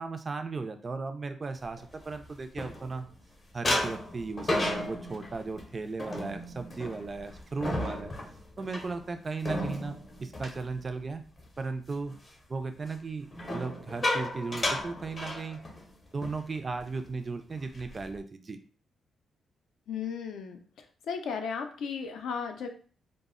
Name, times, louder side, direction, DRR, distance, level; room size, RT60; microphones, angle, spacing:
voice 1, 0.0-3.1 3.5-8.1 8.6-11.2 11.6-12.2 12.5-15.6 16.1-18.6, right 4 dB, 30° right, 7 dB, 0.3 m, -36 dB
sound 1, 1.8-3.2 3.6-11.5 11.8-12.2 13.3-15.9 16.2-16.4 16.7-17.0 17.5-18.2, left 1 dB, 30° left, 0.6 m, -34 dB
voice 2, 19.9-20.6 21.1-22.7, left 6 dB, 75° left, 5 dB, 0.4 m, -35 dB
2.0 x 2.0 x 3.6 m, 0.41 s
cardioid pair, 110°, 0 cm